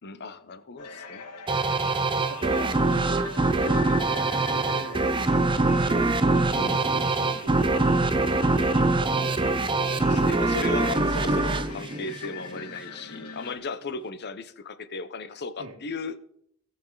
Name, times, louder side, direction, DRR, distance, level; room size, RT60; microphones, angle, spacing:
voice 1, 0.0-1.3 6.6-6.8 9.6-16.3, left 3 dB, 50° left, 13 dB, 0.8 m, -36 dB
sound 1, 0.8-13.5, left 4 dB, 80° left, 1.8 m, -42 dB
sound 2, 1.5-12.7, right 2 dB, 20° right, 0.6 m, -24 dB
voice 2, 2.3-5.3 6.7-8.8 15.6-15.8, right 2 dB, 75° right, -1 dB, 1.5 m, -40 dB
17.5 x 6.8 x 3.9 m, 0.68 s
head